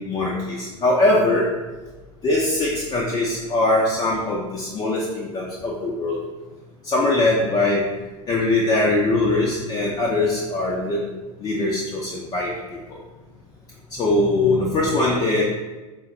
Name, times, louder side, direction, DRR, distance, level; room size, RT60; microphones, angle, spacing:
voice 1, 0.0-1.4 2.2-6.2 6.9-7.8 8.3-11.0 11.4-12.5 14.0-15.4, left 2 dB, 20° left, -3 dB, 0.4 m, -21 dB
4.0 x 2.1 x 3.7 m, 1.2 s
figure-of-eight pair, 85°, 18 cm